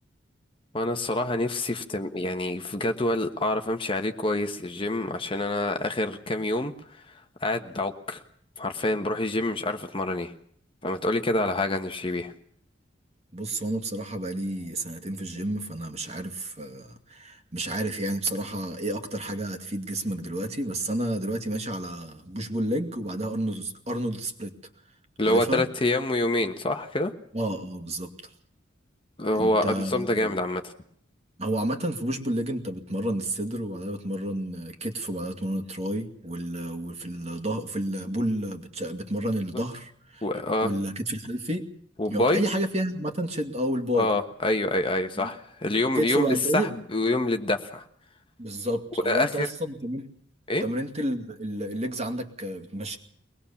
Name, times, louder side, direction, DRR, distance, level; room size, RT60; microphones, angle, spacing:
voice 1, 0.7-6.7 7.4-8.2 8.6-10.3 10.8-12.3 25.2-27.1 29.2-30.7 40.2-40.7 42.0-42.4 43.9-47.8 49.0-49.5 50.5-50.6, left 1 dB, 25° left, 6 dB, 1.3 m, -26 dB
voice 2, 13.3-24.5 25.2-25.7 27.3-28.1 29.3-30.4 31.4-40.2 40.6-41.7 42.1-44.1 45.2-45.3 45.9-46.7 48.4-50.1 50.6-53.0, right 1 dB, 35° right, 6 dB, 2.3 m, -30 dB
23.0 x 20.0 x 7.2 m, 0.64 s
head